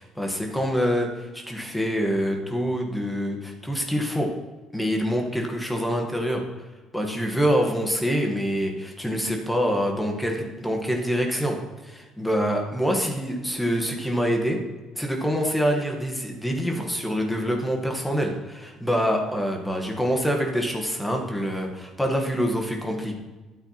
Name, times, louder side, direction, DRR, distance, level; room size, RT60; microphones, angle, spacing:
voice 1, 0.0-4.3 4.7-6.4 6.9-11.6 11.8-14.6 14.9-23.1, equal, 5° left, 2 dB, 1.2 m, -25 dB
12.0 x 9.0 x 2.9 m, 1.2 s
cardioid pair, 175°, 0 cm